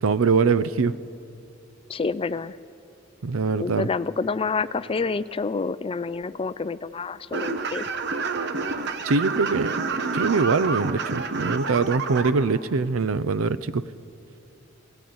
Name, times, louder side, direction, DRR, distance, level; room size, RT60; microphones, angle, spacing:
voice 1, 0.0-0.9 3.2-3.9 9.0-9.7 10.1-13.8, right 4 dB, 80° right, 16 dB, 0.6 m, -23 dB
voice 2, 1.9-2.6 3.6-7.9, left 4 dB, 25° left, 15 dB, 0.4 m, -28 dB
sound 1, 7.3-12.3, right 4 dB, 55° right, 1.0 m, -28 dB
18.0 x 18.0 x 9.5 m, 2.7 s
head